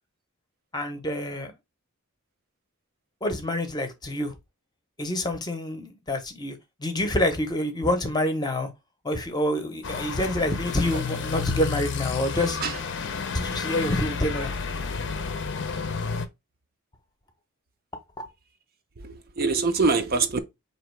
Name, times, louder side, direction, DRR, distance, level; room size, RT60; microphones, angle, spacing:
voice 1, 0.7-1.5 3.2-4.3 5.0-8.7 9.0-12.6 13.3-14.5, left 1 dB, 20° left, 0.7 m, -27 dB
sound 1, 9.8-16.3, left 5 dB, 55° left, 0.6 m, -31 dB
voice 2, 19.0-20.4, right 4 dB, 45° right, 0.5 m, -24 dB
4.4 x 2.8 x 3.1 m
head